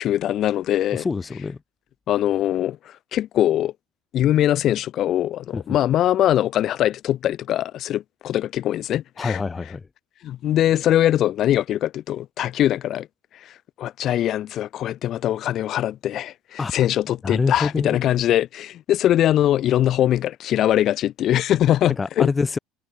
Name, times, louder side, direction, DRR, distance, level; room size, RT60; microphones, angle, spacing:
voice 1, 0.0-1.1 2.1-3.7 4.1-9.4 10.2-13.1 13.4-13.5 13.8-22.3, left 12 dB, 45° left, 7.7 m, -22 dB
voice 2, 0.9-1.6 5.5-5.6 9.2-9.8 16.6-16.7 17.2-18.0 22.0-22.6, left 4 dB, 15° left, 2.9 m, -25 dB
cardioid pair, 140°, 0 cm